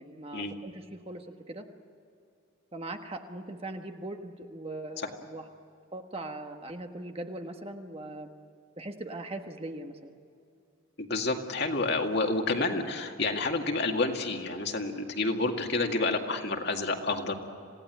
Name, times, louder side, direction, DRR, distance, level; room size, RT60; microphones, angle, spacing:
voice 1, 0.0-1.7 2.7-5.4 5.9-8.3 8.8-10.1, right 2 dB, 30° right, 5 dB, 1.4 m, -40 dB
voice 2, 11.0-17.3, left 3 dB, 55° left, 3 dB, 2.1 m, -29 dB
27.5 x 17.5 x 9.1 m, 2.5 s
head